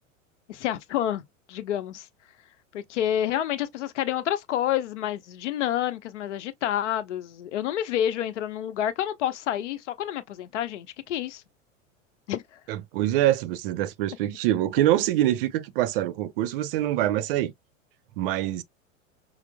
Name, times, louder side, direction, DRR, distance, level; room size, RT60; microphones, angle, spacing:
voice 1, 0.5-1.2 1.5-2.1 2.7-11.4 12.3-12.6, left 11 dB, 60° left, 0.8 m, -28 dB
voice 2, 12.7-17.5 18.2-18.6, right 13 dB, 45° right, 0.6 m, -25 dB
5.8 x 2.0 x 2.2 m
figure-of-eight pair, 85°, 40 cm